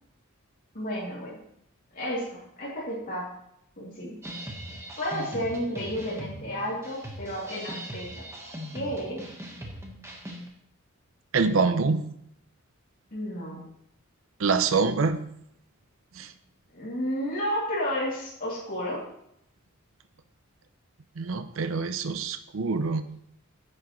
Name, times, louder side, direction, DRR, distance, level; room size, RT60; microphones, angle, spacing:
voice 1, 0.7-1.4 1.9-3.3 3.8-4.1 5.0-8.2 8.7-9.2 13.1-13.6 16.7-19.0, equal, 40° left, -8 dB, 2.7 m, -32 dB
sound 1, 4.2-10.5, equal, 15° right, 1.3 m, -40 dB
voice 2, 11.3-12.1 14.4-15.2 16.2-16.3 21.2-23.1, right 4 dB, 65° right, 10 dB, 0.6 m, -25 dB
10.5 x 7.5 x 3.1 m, 0.73 s
head